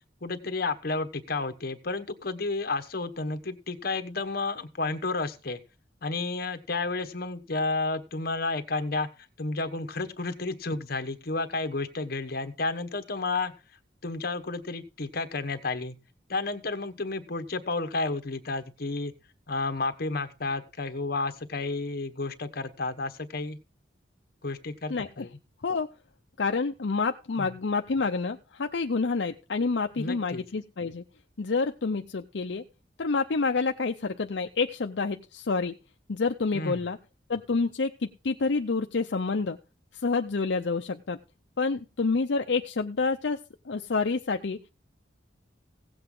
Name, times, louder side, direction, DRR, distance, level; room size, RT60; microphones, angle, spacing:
voice 1, 0.2-5.6 6.0-9.1 9.4-13.5 14.0-16.0 16.3-19.1 19.5-23.6 24.4-25.3 27.4-27.5 30.0-30.4 36.5-36.9, left 3 dB, 55° left, 8 dB, 1.2 m, -31 dB
voice 2, 24.9-25.3 25.6-25.9 26.4-31.0 31.4-32.6 33.0-35.7 36.1-37.0 37.3-39.6 40.0-41.2 41.6-43.4 43.7-44.6, left 4 dB, 75° left, 5 dB, 0.6 m, -28 dB
16.5 x 7.9 x 3.8 m, 0.31 s
head